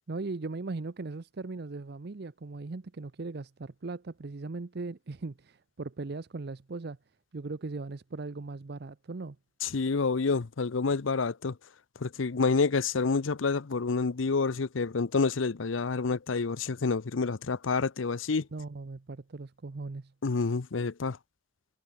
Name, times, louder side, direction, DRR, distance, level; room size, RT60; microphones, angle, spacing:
voice 1, 0.1-7.0 7.3-9.4 18.5-20.1, right 3 dB, 55° right, 0.6 m, -38 dB
voice 2, 9.6-11.5 12.0-18.5 20.2-21.2, left 4 dB, 90° left, 0.7 m, -28 dB
head